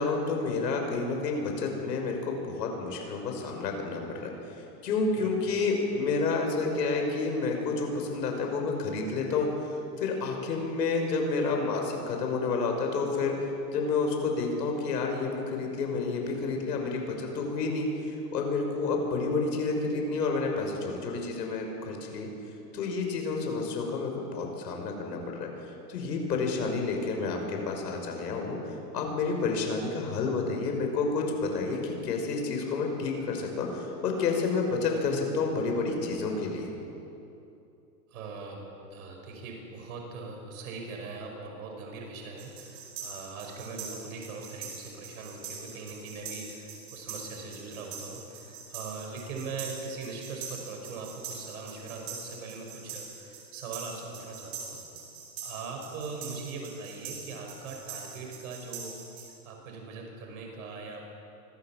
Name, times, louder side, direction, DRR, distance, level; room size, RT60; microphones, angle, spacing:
voice 1, 0.0-4.3 4.8-9.5 10.0-13.3 13.7-17.9 18.3-22.3 22.7-25.5 25.9-28.6 28.9-36.7, left 4 dB, 75° left, 2 dB, 6.0 m, -29 dB
voice 2, 38.1-38.6 38.9-54.8 55.4-59.0 59.4-61.1, right 4 dB, 55° right, 1 dB, 5.7 m, -41 dB
sound 1, 42.4-59.3, right 6 dB, 30° right, 4.6 m, -43 dB
25.0 x 17.0 x 7.4 m, 2.8 s
supercardioid pair, 170°, 49 cm